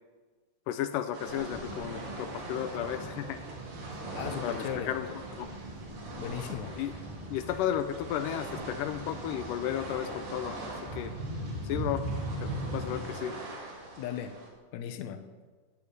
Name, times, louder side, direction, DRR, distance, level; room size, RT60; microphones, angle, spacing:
voice 1, 0.7-3.4 4.4-5.1 5.4-5.5 6.8-6.9 7.3-10.6 11.0-11.1 11.6-12.0 12.4-13.3, left 10 dB, 85° left, 10 dB, 2.3 m, -33 dB
sound 1, 1.1-14.5, right 2 dB, 90° right, 4.9 m, -43 dB
sound 2, 1.5-13.0, right 1 dB, 15° right, 3.2 m, -40 dB
voice 2, 4.1-5.0 6.2-6.8 14.0-14.4 14.7-15.2, left 9 dB, 65° left, 8 dB, 2.2 m, -37 dB
18.0 x 10.5 x 6.7 m, 1.4 s
omnidirectional pair, 3.8 m